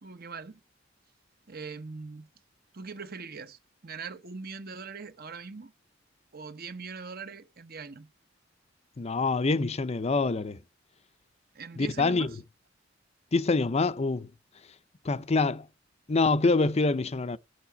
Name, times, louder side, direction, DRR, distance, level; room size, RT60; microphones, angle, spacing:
voice 1, 0.0-0.6 1.5-2.3 2.7-5.7 6.3-8.1 11.5-12.4, right 4 dB, 50° right, 1.0 m, -41 dB
voice 2, 9.0-10.6 11.8-12.3 13.3-14.3 15.0-15.7 16.1-17.4, left 3 dB, 35° left, 0.6 m, -25 dB
10.0 x 7.1 x 6.9 m
head